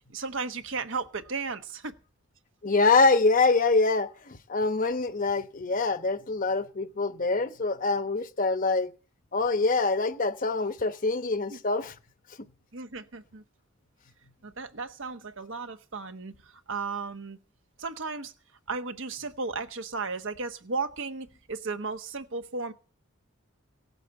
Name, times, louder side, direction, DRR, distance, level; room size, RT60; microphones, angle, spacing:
voice 1, 0.1-2.0 11.5-11.6 12.7-13.4 14.4-17.4 17.8-18.3 18.7-22.7, right 4 dB, 70° right, 1.2 m, -35 dB
voice 2, 2.6-8.9 9.3-11.9, left 3 dB, 40° left, 1.0 m, -25 dB
17.0 x 8.3 x 7.0 m
head